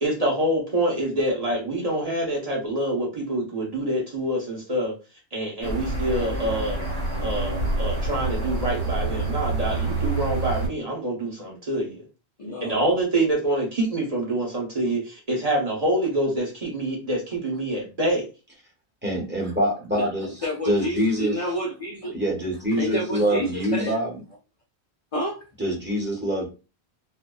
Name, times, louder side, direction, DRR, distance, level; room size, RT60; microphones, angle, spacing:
voice 1, 0.0-4.9 5.3-6.9 7.2-12.0 12.6-18.3, right 1 dB, 40° right, 0.8 m, -26 dB
sound 1, 5.6-10.7, right 2 dB, 65° right, 1.2 m, -27 dB
voice 2, 12.4-12.8 19.9-20.1 20.4-22.1 22.8-24.0 25.1-25.4, equal, 50° left, 0.4 m, -29 dB
voice 3, 19.0-20.3 20.6-21.3 22.1-24.2 25.6-26.5, equal, 10° right, 0.9 m, -25 dB
2.6 x 2.2 x 2.2 m
omnidirectional pair, 1.1 m